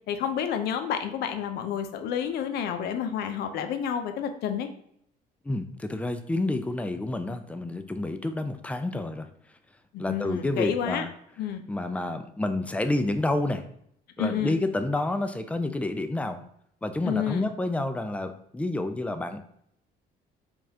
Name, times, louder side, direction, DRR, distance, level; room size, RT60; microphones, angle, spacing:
voice 1, 0.1-4.7 9.9-11.0 11.4-11.6 14.2-14.6 17.0-17.5, left 8 dB, 75° left, 7 dB, 0.6 m, -30 dB
voice 2, 5.4-9.3 10.0-11.1 11.7-13.6 14.2-16.4 16.8-19.4, left 2 dB, 10° left, 8 dB, 0.4 m, -29 dB
5.3 x 2.4 x 2.7 m, 0.71 s
cardioid pair, 110°, 17 cm